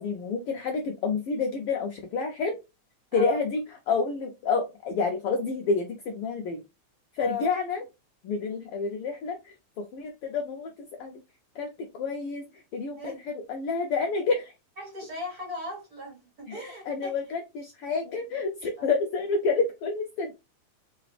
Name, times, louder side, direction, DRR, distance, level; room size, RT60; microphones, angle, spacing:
voice 1, 0.0-2.6 3.1-3.6 3.9-6.6 7.1-7.8 8.2-10.7 11.0-11.1 11.6-13.1 13.5-14.5 16.5-20.3, left 4 dB, 90° left, 1.2 m, -29 dB
voice 2, 3.1-3.4 7.2-7.5 12.9-13.2 14.8-17.1 18.8-18.9, left 4 dB, 40° right, 1.6 m, -36 dB
3.9 x 3.8 x 3.3 m
omnidirectional pair, 3.3 m